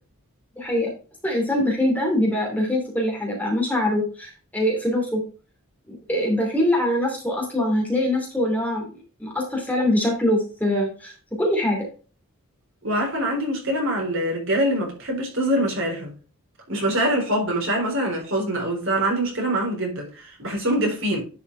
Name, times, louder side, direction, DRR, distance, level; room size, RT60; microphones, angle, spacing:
voice 1, 0.6-0.9 1.2-5.2 5.9-8.8 9.2-11.1 11.4-11.9, left 1 dB, 5° left, 2.8 m, -23 dB
voice 2, 12.8-16.1 16.7-21.2, right 1 dB, 60° right, 4.0 m, -24 dB
11.0 x 5.7 x 3.3 m
head